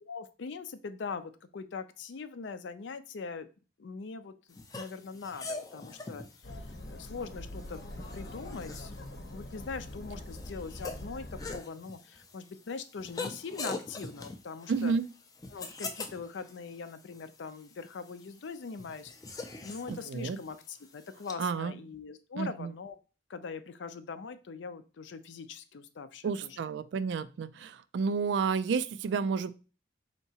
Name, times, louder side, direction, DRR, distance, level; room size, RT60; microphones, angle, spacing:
voice 1, 0.1-3.5 3.8-6.3 6.7-7.8 8.1-8.9 9.3-15.0 15.5-19.1 19.6-23.0 23.3-26.6, left 5 dB, 85° left, 11 dB, 0.5 m, -42 dB
sound 1, 4.5-21.3, left 3 dB, 20° left, 0.4 m, -44 dB
Chatter, 6.4-11.6, left 1 dB, 65° left, 0.8 m, -43 dB
voice 2, 14.7-15.1 20.1-20.4 21.4-21.7 22.4-22.7 26.2-29.5, right 5 dB, 80° right, 13 dB, 0.3 m, -30 dB
4.5 x 2.9 x 2.8 m, 0.34 s
head